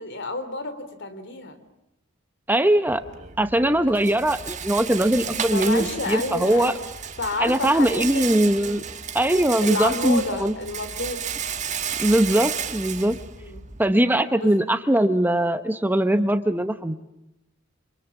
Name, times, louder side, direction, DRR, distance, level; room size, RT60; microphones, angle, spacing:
voice 1, 0.0-1.6 3.6-4.1 5.5-6.8 7.2-9.0 9.6-11.2 13.4-13.7 14.4-14.6, left 2 dB, 60° left, 11 dB, 3.3 m, -30 dB
voice 2, 2.5-3.0 3.4-6.7 7.4-8.8 9.1-10.5 12.0-13.2 13.8-17.0, right 1 dB, 10° right, 9 dB, 0.9 m, -21 dB
Rattle, 2.9-13.9, right 8 dB, 35° right, 1.4 m, -33 dB
30.0 x 26.5 x 7.2 m, 0.89 s
head